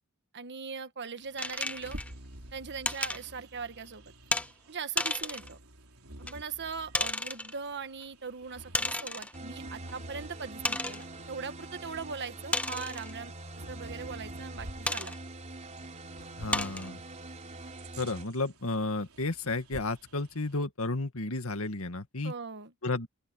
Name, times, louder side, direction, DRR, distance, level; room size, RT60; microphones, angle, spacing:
voice 1, 0.3-2.0 2.5-4.1 4.7-5.6 6.2-13.3 13.7-15.2 22.2-22.7, right 5 dB, 55° right, 1.5 m, -40 dB
Bird vocalization bird call bird song, 1.2-20.7, right 1 dB, 75° right, 4.3 m, -51 dB
sound 1, 1.4-2.1 2.8-3.2 4.3-4.5 5.0-5.5 6.3-6.4 6.9-7.5 8.7-9.4 9.9-10.0 10.6-11.1 12.5-13.1 14.9-15.2 15.8-15.9 16.5-16.9, left 2 dB, 5° left, 0.6 m, -32 dB
sound 2, 9.3-18.2, right 2 dB, 35° right, 3.5 m, -44 dB
voice 2, 16.4-17.0 18.0-22.3 22.8-23.1, left 2 dB, 70° left, 2.1 m, -32 dB
open air
head